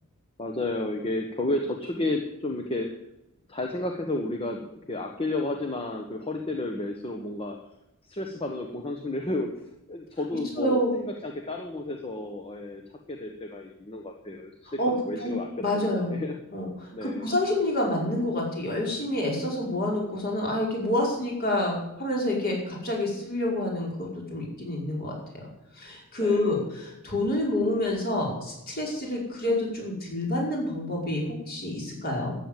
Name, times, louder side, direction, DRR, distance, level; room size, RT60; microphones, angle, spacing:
voice 1, 0.4-2.9 3.5-7.6 8.0-15.5 15.7-16.4 16.9-17.3 26.2-26.6, left 2 dB, 25° left, 3 dB, 1.2 m, -32 dB
voice 2, 10.6-10.9 14.8-14.9 15.2-15.3 15.6-16.2 16.5-16.7 17.0-23.9 24.3-25.1 25.8-32.3, left 1 dB, 45° left, -2 dB, 5.1 m, -28 dB
13.5 x 7.6 x 9.0 m, 0.87 s
head